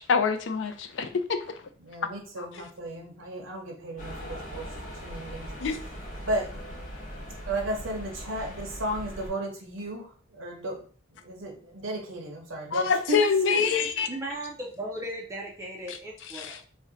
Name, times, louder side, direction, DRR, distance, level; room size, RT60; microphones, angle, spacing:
voice 1, 0.0-1.5 2.4-2.5 5.6-5.8 12.7-14.1 15.9-16.0 16.3-16.6, left 5 dB, 70° left, 0.4 m, -26 dB
voice 2, 1.8-4.7 5.0-5.5 6.2-6.6 7.5-10.8 11.1-13.7, right 1 dB, 90° right, 0.7 m, -34 dB
sound 1, 4.0-9.3, equal, 45° left, 0.9 m, -40 dB
voice 3, 14.0-16.6, right 1 dB, 15° right, 0.4 m, -37 dB
2.5 x 2.1 x 3.8 m
head